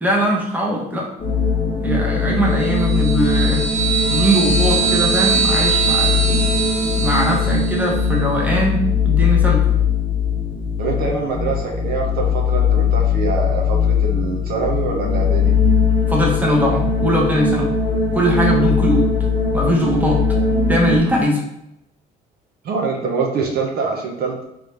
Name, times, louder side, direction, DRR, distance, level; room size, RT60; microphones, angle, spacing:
voice 1, 0.0-1.1 1.8-3.6 4.1-6.6 6.9-9.6 16.1-17.7 18.1-19.1 19.5-20.2 20.7-21.4, equal, 10° right, -2 dB, 1.1 m, -20 dB
sound 1, 1.2-21.0, left 5 dB, 30° left, 0.9 m, -19 dB
sound 2, 2.5-8.0, right 5 dB, 45° right, 1.5 m, -22 dB
voice 2, 10.8-15.5 22.6-24.4, right 4 dB, 65° right, 0 dB, 0.9 m, -24 dB
3.7 x 3.3 x 3.3 m, 0.80 s
cardioid pair, 110°, 17 cm